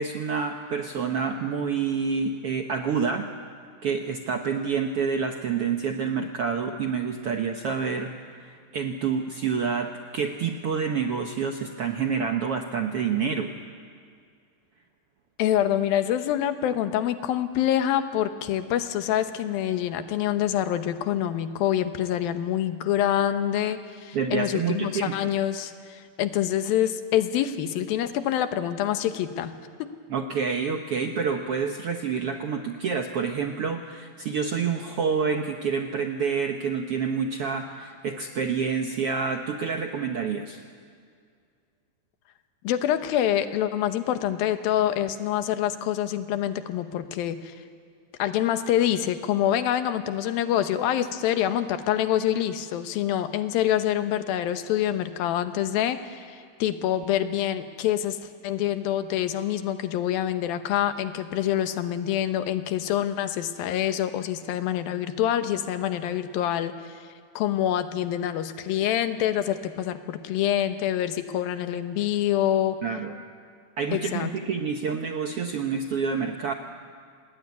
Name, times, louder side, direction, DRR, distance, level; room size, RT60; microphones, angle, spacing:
voice 1, 0.0-3.3 3.8-13.5 24.1-25.3 30.1-40.6 72.8-73.2 73.8-76.5, right 6 dB, 70° right, 4 dB, 1.4 m, -28 dB
voice 2, 15.4-29.5 29.8-29.9 42.6-47.5 48.2-58.2 58.4-67.1 67.4-72.8 73.9-74.3, left 11 dB, 85° left, 9 dB, 2.9 m, -26 dB
27.0 x 19.5 x 9.5 m, 2.2 s
omnidirectional pair, 4.1 m